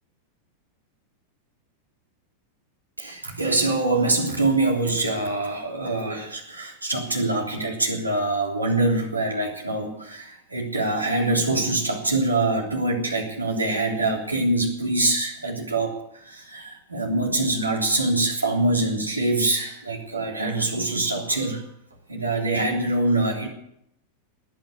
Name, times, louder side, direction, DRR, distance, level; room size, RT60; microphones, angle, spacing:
voice 1, 3.0-21.6 22.1-23.5, right 2 dB, 80° right, 1 dB, 3.3 m, -24 dB
19.5 x 9.2 x 8.2 m, 0.75 s
figure-of-eight pair, 90°, 0 cm